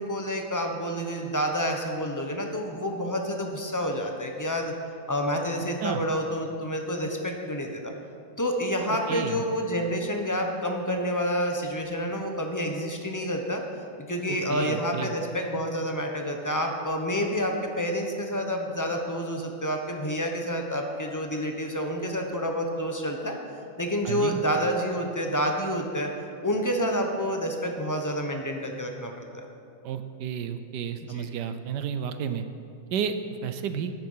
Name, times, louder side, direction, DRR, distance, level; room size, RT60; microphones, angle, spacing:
voice 1, 0.0-4.7 5.1-7.9 8.4-13.6 14.0-23.4 23.8-26.1 26.4-29.5 31.1-31.2, equal, 20° left, 3 dB, 0.6 m, -29 dB
voice 2, 8.9-9.4 14.3-15.1 24.0-24.4 29.8-32.4 32.9-33.2 33.4-33.9, right 8 dB, 70° right, 10 dB, 1.1 m, -31 dB
13.0 x 9.5 x 5.6 m, 2.5 s
omnidirectional pair, 2.1 m